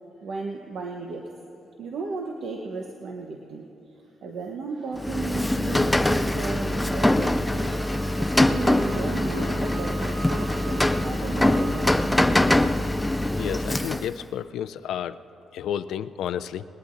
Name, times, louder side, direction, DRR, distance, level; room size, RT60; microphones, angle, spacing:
voice 1, 0.2-1.3 1.8-7.7 8.2-12.2, right 3 dB, 60° right, 1 dB, 0.9 m, -35 dB
Rain, 5.0-14.2, left 1 dB, 5° left, 0.3 m, -23 dB
Wind instrument woodwind instrument, 7.5-12.0, right 6 dB, 85° right, 0.6 m, -42 dB
voice 2, 13.4-15.2 15.5-16.6, left 9 dB, 85° left, 13 dB, 0.4 m, -31 dB
20.0 x 19.5 x 2.6 m, 2.9 s
cardioid pair, 160°, 0 cm